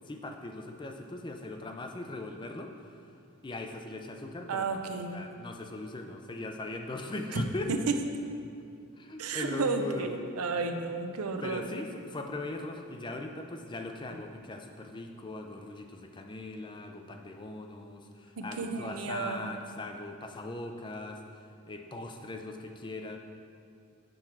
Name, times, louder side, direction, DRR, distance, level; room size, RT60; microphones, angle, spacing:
voice 1, 0.1-3.1 3.4-4.8 5.1-7.7 9.0-10.1 11.4-23.2, left 2 dB, 20° left, 4 dB, 0.5 m, -40 dB
voice 2, 4.5-5.2 7.3-7.4 7.7-7.9 9.2-11.6 18.4-19.5, right 4 dB, 90° right, 6 dB, 0.6 m, -32 dB
7.8 x 4.4 x 6.0 m, 2.6 s
head